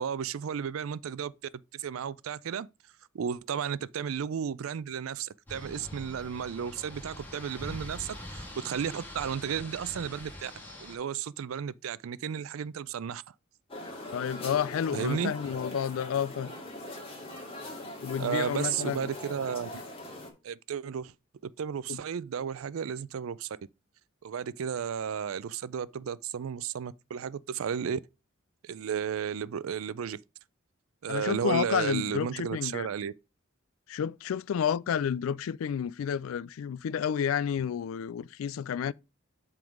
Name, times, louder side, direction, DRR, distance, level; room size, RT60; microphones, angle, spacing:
voice 1, 0.0-1.3 1.7-2.7 3.1-10.5 10.8-13.2 14.9-15.3 18.2-19.7 20.4-21.1 21.4-23.6 24.2-28.0 28.6-30.2 31.0-33.1, right 7 dB, 85° right, 0.4 m, -33 dB
sound 1, 5.5-11.0, left 1 dB, 10° left, 2.1 m, -44 dB
sound 2, 13.7-20.3, left 1 dB, 30° left, 1.9 m, -41 dB
voice 2, 14.1-16.5 18.0-19.0 21.9-22.0 31.1-32.9 33.9-38.9, left 8 dB, 75° left, 0.3 m, -30 dB
7.7 x 3.8 x 5.1 m
head